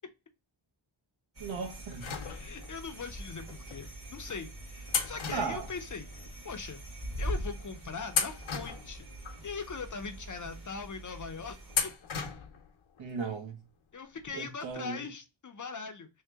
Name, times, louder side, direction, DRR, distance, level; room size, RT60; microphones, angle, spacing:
sound 1, 1.3-11.9, right 1 dB, 30° right, 1.1 m, -43 dB
voice 1, 1.4-2.1 5.3-5.7 13.0-13.6 14.3-15.1, right 5 dB, 70° right, 1.0 m, -36 dB
sound 2, 2.0-2.9 3.7-3.8 4.9-6.3 6.6-6.7 7.5-7.7 8.1-9.4 9.9-10.0 11.7-12.7 13.0-13.1 14.3-14.4 14.7-14.8, left 6 dB, 85° left, 0.7 m, -35 dB
voice 2, 2.2-6.1 6.4-6.8 7.2-9.0 9.4-11.9 13.9-16.1, left 5 dB, 40° left, 0.5 m, -41 dB
3.2 x 2.8 x 3.3 m
wide cardioid pair, 165°, 47 cm